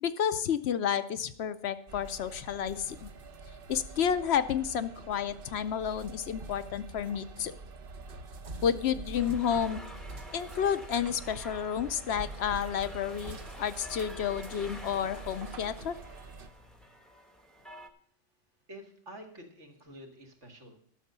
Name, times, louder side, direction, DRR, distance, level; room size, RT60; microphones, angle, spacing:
voice 1, 0.0-3.1 3.7-7.5 8.6-9.8 10.3-16.0, left 8 dB, 65° left, 12 dB, 0.8 m, -31 dB
sound 1, 1.9-16.5, right 3 dB, 50° right, 0.9 m, -45 dB
sound 2, 9.1-17.9, equal, ahead, 0.8 m, -49 dB
voice 2, 18.7-20.8, equal, 75° right, 2 dB, 2.3 m, -49 dB
12.0 x 6.5 x 6.7 m, 0.63 s
omnidirectional pair, 1.2 m